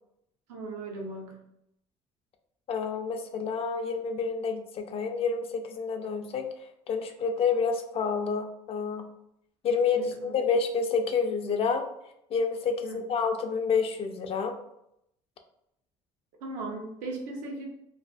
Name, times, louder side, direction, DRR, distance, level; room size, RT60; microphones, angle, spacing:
voice 1, 0.5-1.4 9.9-10.3 12.9-13.0 16.4-17.7, right 2 dB, 90° right, 0 dB, 0.6 m, -37 dB
voice 2, 2.7-9.1 9.6-11.8 12.3-14.6, left 5 dB, 45° left, 6 dB, 0.4 m, -29 dB
2.4 x 2.4 x 2.3 m, 0.78 s
cardioid pair, 100°, 14 cm